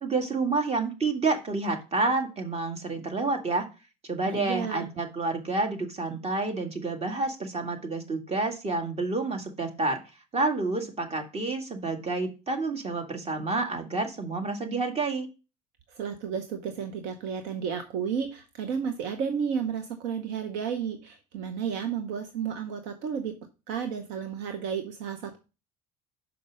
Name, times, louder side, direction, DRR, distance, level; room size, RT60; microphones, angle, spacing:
voice 1, 0.0-3.7 4.1-10.0 10.3-15.3, right 3 dB, 35° right, 4 dB, 1.9 m, -29 dB
voice 2, 4.3-4.9 15.9-23.3 23.7-25.4, right 7 dB, 70° right, 7 dB, 0.9 m, -32 dB
5.9 x 5.3 x 5.0 m, 0.31 s
hypercardioid pair, 65°, 19 cm